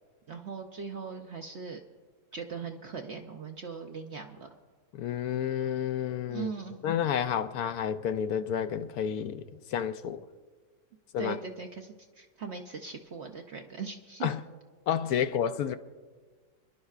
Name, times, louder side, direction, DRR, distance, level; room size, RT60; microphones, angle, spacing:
voice 1, 0.3-1.8 2.3-4.5 6.3-6.8 11.2-14.3, right 5 dB, 60° right, 0.7 m, -39 dB
voice 2, 4.9-6.5 6.8-10.3 11.1-11.4 14.2-14.4 14.9-15.8, left 9 dB, 70° left, 1.0 m, -30 dB
28.5 x 11.0 x 2.4 m
omnidirectional pair, 1.8 m